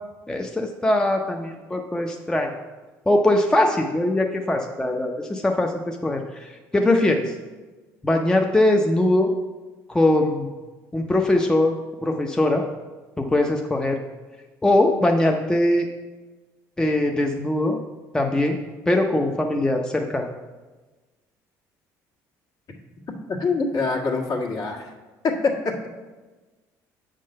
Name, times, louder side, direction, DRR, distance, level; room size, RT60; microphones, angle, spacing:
voice 1, 0.3-2.5 3.1-7.3 8.0-9.3 9.9-10.5 10.9-11.8 12.0-12.6 13.2-14.0 14.6-15.9 16.8-17.8 18.1-18.6 18.9-20.3, left 1 dB, 10° left, 2 dB, 0.6 m, -21 dB
voice 2, 23.3-24.9 25.2-25.9, left 4 dB, 55° left, -1 dB, 1.6 m, -24 dB
7.7 x 3.8 x 6.4 m, 1.2 s
supercardioid pair, 95°, 7 cm